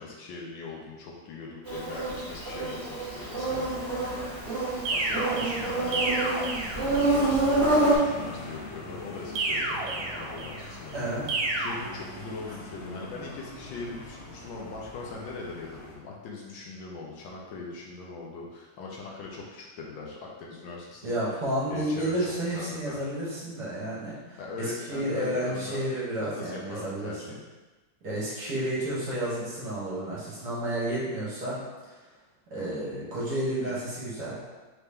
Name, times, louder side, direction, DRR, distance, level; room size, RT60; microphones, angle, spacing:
voice 1, 0.0-4.3 4.9-6.4 6.8-11.2 11.5-21.2 21.7-23.1 24.1-25.8 26.2-27.4 33.6-33.8, left 3 dB, 75° left, -2 dB, 1.4 m, -40 dB
Insect, 1.6-8.0, right 2 dB, 35° right, 1.4 m, -27 dB
sound 1, 3.4-15.9, left 2 dB, 50° left, 0.7 m, -43 dB
sound 2, 4.9-7.3 9.4-10.7 11.3-11.7, right 2 dB, 80° right, 1.5 m, -30 dB
voice 2, 10.9-11.3 21.0-27.3 28.0-31.6 31.8-32.0 32.5-34.4, right 1 dB, 55° right, -8 dB, 1.7 m, -31 dB
4.4 x 3.0 x 3.4 m, 1.2 s
omnidirectional pair, 2.2 m